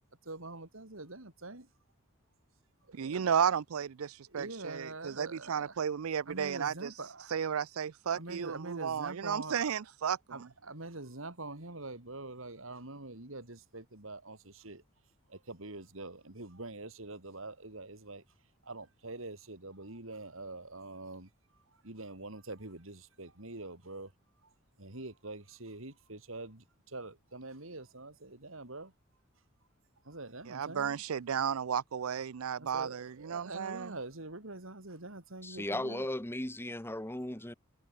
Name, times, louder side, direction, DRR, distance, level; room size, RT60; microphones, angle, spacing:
voice 1, 0.2-1.7 2.9-3.5 4.3-5.8 6.3-7.3 8.1-9.8 10.3-14.8 15.3-18.2 18.6-21.3 21.7-24.1 24.4-28.9 30.0-31.0 32.6-36.1, right 2 dB, 70° right, 3.5 m, -45 dB
voice 2, 2.9-6.9 7.3-10.5 30.5-33.9, right 7 dB, 85° right, 0.5 m, -33 dB
voice 3, 35.4-37.5, left 1 dB, 10° left, 1.6 m, -36 dB
head